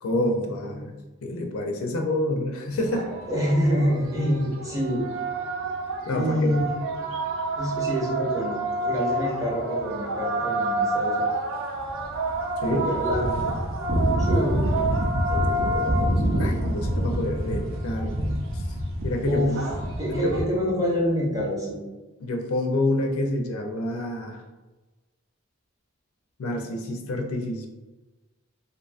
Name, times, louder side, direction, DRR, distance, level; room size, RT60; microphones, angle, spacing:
voice 1, 0.0-3.1 6.1-6.5 12.6-12.9 15.3-18.2 18.5-18.6 19.0-19.6 20.1-20.3 22.2-24.4 26.4-27.7, left 1 dB, 80° left, 3 dB, 0.4 m, -28 dB
sound 1, 2.9-20.4, right 1 dB, 60° right, 0.4 m, -27 dB
voice 2, 3.3-5.0 6.1-6.7 7.6-8.6 8.8-11.2 12.6-13.5 14.2-14.7 19.3-19.5 20.0-21.8, equal, 15° right, -5 dB, 0.6 m, -26 dB
2.6 x 2.4 x 2.3 m, 1.2 s
head